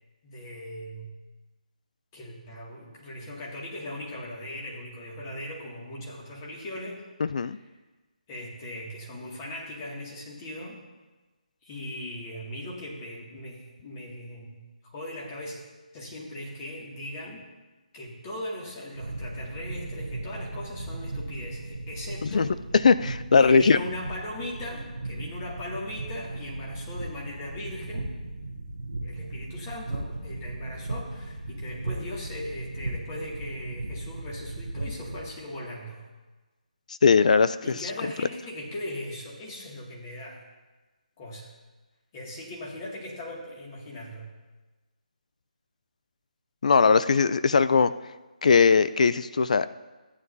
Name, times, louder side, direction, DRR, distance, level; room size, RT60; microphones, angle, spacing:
voice 1, 0.2-1.1 2.1-7.0 7.3-7.6 8.3-10.8 11.6-14.6 14.8-15.6 15.9-17.4 17.9-22.5 23.4-28.1 29.0-36.1 37.6-40.4 41.2-41.5 42.1-44.3, left 1 dB, 25° left, -3 dB, 2.3 m, -39 dB
voice 2, 7.2-7.6 22.3-22.5 22.8-23.8 37.0-37.8 46.6-47.9 48.4-49.7, left 5 dB, 55° left, 13 dB, 0.4 m, -20 dB
sound 1, 18.9-35.2, right 2 dB, 85° right, 1.3 m, -37 dB
14.5 x 9.6 x 2.7 m, 1.2 s
figure-of-eight pair, 155°, 5 cm